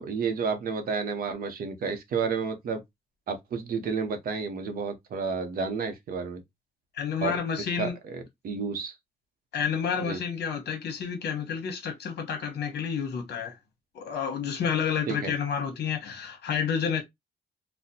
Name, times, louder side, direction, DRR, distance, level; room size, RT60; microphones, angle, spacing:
voice 1, 0.0-2.8 3.3-6.4 7.2-7.4 7.8-8.9 10.0-10.2 15.1-15.3, right 5 dB, 60° right, 0.8 m, -31 dB
voice 2, 6.9-8.0 9.5-13.5 13.9-17.0, left 7 dB, 75° left, 1.1 m, -30 dB
4.1 x 2.2 x 2.7 m
wide cardioid pair, 165°, 17 cm